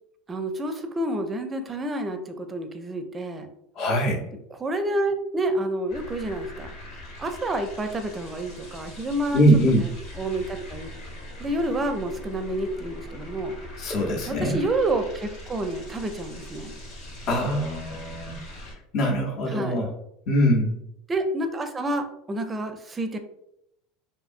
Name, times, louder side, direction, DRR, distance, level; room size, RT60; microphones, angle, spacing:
voice 1, 0.3-3.5 4.6-6.7 7.2-9.9 10.2-10.9 11.4-13.5 14.3-16.7 19.5-19.8 21.1-23.2, right 1 dB, 25° right, 7 dB, 0.4 m, -29 dB
voice 2, 3.8-4.2 9.3-9.8 13.8-14.6 17.3-18.4 18.9-19.9 20.3-20.8, equal, 55° left, -1 dB, 0.7 m, -22 dB
sound 1, 5.9-18.7, left 1 dB, 75° left, 1.0 m, -41 dB
2.6 x 2.6 x 2.5 m, 0.78 s
hypercardioid pair, 90°, 0 cm